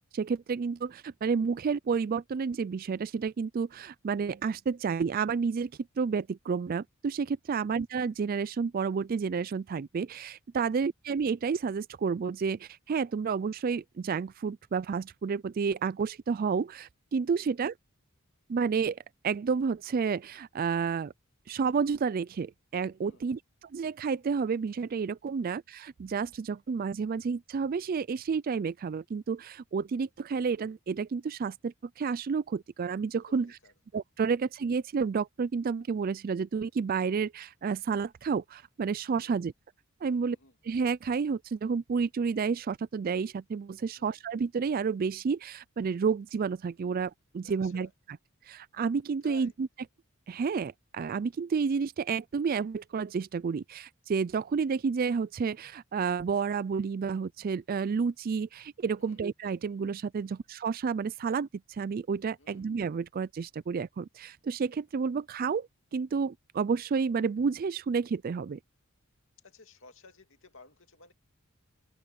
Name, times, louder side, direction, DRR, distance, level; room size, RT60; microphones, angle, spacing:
voice 1, 0.1-5.7 6.0-17.7 18.5-19.0 19.2-21.1 21.5-33.6 33.9-39.5 40.0-40.4 40.7-47.9 48.5-49.7 50.3-68.6, right 5 dB, 40° right, 0.3 m, -30 dB
voice 2, 40.1-40.5 44.0-44.2 47.4-47.9 49.2-49.5 59.0-59.2 60.2-60.4 62.4-62.7 69.4-71.1, left 3 dB, 60° left, 2.6 m, -55 dB
head